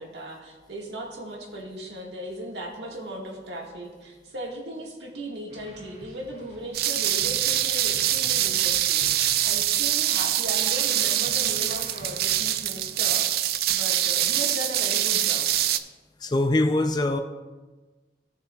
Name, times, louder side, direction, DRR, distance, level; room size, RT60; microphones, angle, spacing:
voice 1, 0.0-13.4 13.7-15.5, right 1 dB, 75° right, -1 dB, 1.8 m, -37 dB
sound 1, 5.5-13.1, equal, 35° right, 2.4 m, -49 dB
sound 2, 6.7-15.8, right 12 dB, 55° right, 0.4 m, -24 dB
voice 2, 16.2-17.2, left 2 dB, 25° left, 7 dB, 0.4 m, -23 dB
16.0 x 6.5 x 2.4 m, 1.3 s
head